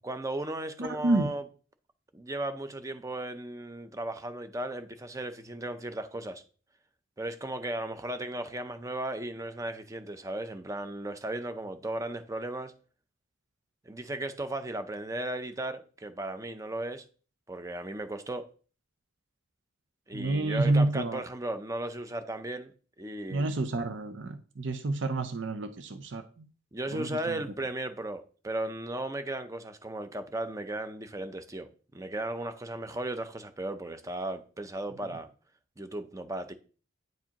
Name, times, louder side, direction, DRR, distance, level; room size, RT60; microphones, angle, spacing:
voice 1, 0.0-1.4 2.1-6.4 7.2-12.7 13.9-17.0 17.5-18.5 20.1-22.7 23.0-23.5 26.7-35.3 35.8-36.5, right 1 dB, 15° right, 0.6 m, -36 dB
voice 2, 0.8-1.3 20.1-21.2 23.3-26.5 26.9-27.4, right 2 dB, 65° right, 0.6 m, -29 dB
9.2 x 4.7 x 2.9 m
head